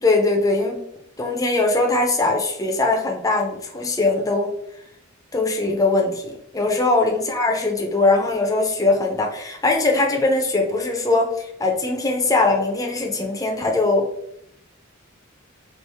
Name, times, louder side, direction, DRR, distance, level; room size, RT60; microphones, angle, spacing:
voice 1, 0.0-0.8 1.2-4.5 5.3-14.1, left 2 dB, 15° left, 1 dB, 0.6 m, -21 dB
4.4 x 2.6 x 3.4 m, 0.74 s
head